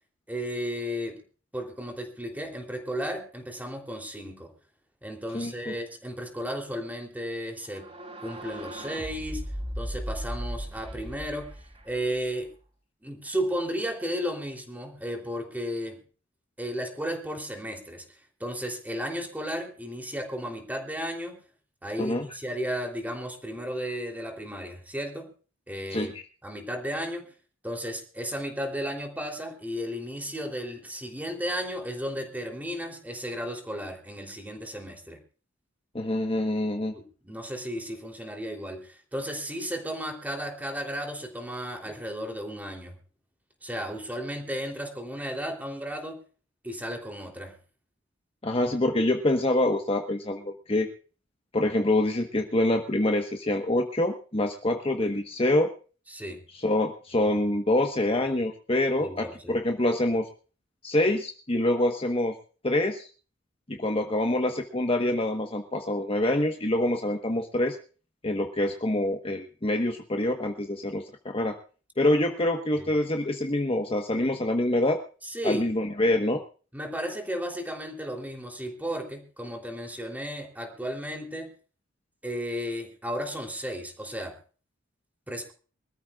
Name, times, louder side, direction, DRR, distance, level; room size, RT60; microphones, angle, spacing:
voice 1, 0.3-1.2 1.5-4.5 5.0-7.9 8.2-9.5 9.8-11.5 11.8-12.5 13.0-16.0 16.6-21.4 21.8-25.3 25.7-26.1 26.4-27.3 27.6-35.2 36.9-43.0 43.6-46.2 46.6-47.6 56.1-56.4 59.0-59.5 72.5-72.9 75.2-75.6 76.7-81.5 82.2-84.4 85.3-85.5, equal, 10° right, 3 dB, 3.3 m, -34 dB
voice 2, 5.3-5.8 22.0-22.2 25.9-26.1 35.9-36.9 48.4-50.9 51.5-55.7 56.6-60.3 60.8-62.4 62.6-63.1 63.7-67.8 68.2-71.6 72.0-75.0 75.4-76.4, left 1 dB, 30° left, 4 dB, 1.2 m, -26 dB
sound 1, 7.6-12.5, equal, 30° right, 5.0 m, -37 dB
25.0 x 13.5 x 2.4 m, 0.38 s
head